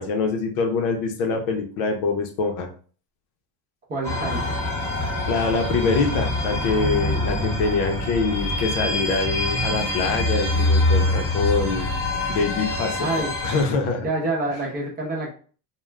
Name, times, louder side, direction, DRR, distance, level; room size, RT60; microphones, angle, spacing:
voice 1, 0.0-2.7 5.3-11.9 12.3-14.1, left 4 dB, 90° left, 4 dB, 0.8 m, -24 dB
voice 2, 3.9-4.5 13.0-13.3 14.0-15.3, right 2 dB, 20° right, -3 dB, 0.6 m, -27 dB
sound 1, 4.0-13.6, left 2 dB, 15° left, 1.0 m, -25 dB
2.4 x 2.3 x 3.2 m, 0.41 s
cardioid pair, 165°, 46 cm